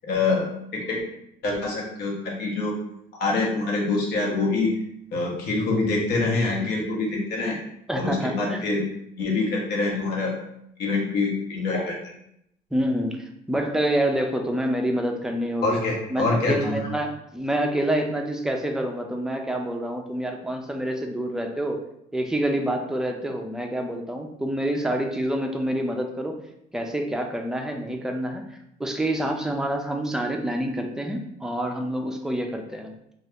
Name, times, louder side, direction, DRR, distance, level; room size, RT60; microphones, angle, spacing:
voice 1, 0.1-1.0 1.4-2.8 3.2-4.7 5.1-7.6 8.0-8.8 9.2-10.4 10.8-12.0 15.6-16.8, left 3 dB, 70° left, -2 dB, 1.0 m, -25 dB
voice 2, 7.9-8.6 12.7-15.8 16.1-21.8 22.1-26.4 26.7-28.4 28.8-32.9, right 1 dB, 5° right, 3 dB, 0.4 m, -27 dB
2.7 x 2.3 x 3.4 m, 0.77 s
cardioid pair, 110°, 17 cm